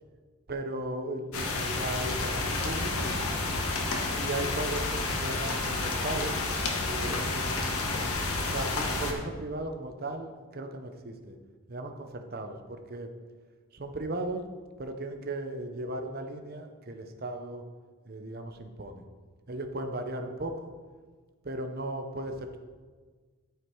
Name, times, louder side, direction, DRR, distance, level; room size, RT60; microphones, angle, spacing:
voice 1, 0.5-3.1 4.2-6.4 6.8-7.7 8.3-11.3 11.7-13.1 13.7-14.4 14.8-17.6 18.1-19.0 19.5-20.7 21.4-22.6, right 2 dB, 45° right, 6 dB, 0.8 m, -36 dB
sound 1, 1.3-9.1, left 3 dB, 80° left, 1.2 m, -30 dB
12.0 x 4.9 x 4.6 m, 1.4 s
head